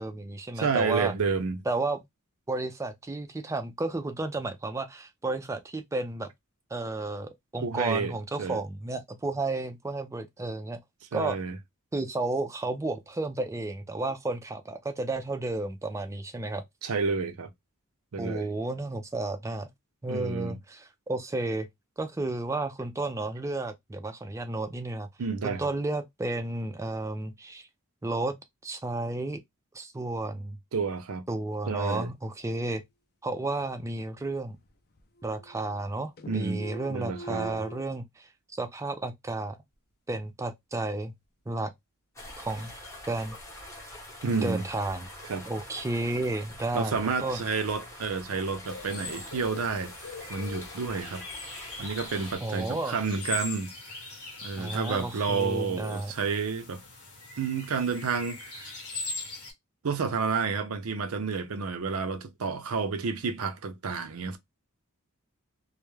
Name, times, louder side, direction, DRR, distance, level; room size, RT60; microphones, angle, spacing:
voice 1, 0.0-1.1 1.7-2.0 2.5-6.3 6.7-10.8 11.1-11.4 11.9-16.6 18.2-19.7 20.0-21.7 22.0-25.1 25.4-27.7 28.0-28.4 28.6-29.4 29.7-30.6 31.3-32.8 33.2-34.6 35.2-39.6 40.1-41.1 41.5-41.7 42.4-42.7 43.1-43.4 44.4-45.1 45.5-47.4 52.4-53.0 54.6-56.1, right 2 dB, 15° right, 0.3 m, -32 dB
voice 2, 0.6-1.6 7.6-8.6 11.1-11.6 16.8-17.5 18.1-18.5 20.1-20.6 25.2-25.7 30.7-31.2 31.7-32.1 36.3-37.6 44.2-44.6 45.3-45.5 46.7-51.2 51.8-53.7 54.4-56.8 57.4-58.7 59.8-64.4, right 5 dB, 75° right, 0.5 m, -30 dB
sound 1, 34.4-34.7 35.0-35.9 36.2-37.8, right 1 dB, 45° left, 0.5 m, -44 dB
sound 2, 42.1-52.4, left 1 dB, 15° left, 0.8 m, -45 dB
sound 3, 48.6-59.5, left 3 dB, 90° left, 1.0 m, -41 dB
2.3 x 2.0 x 3.0 m
head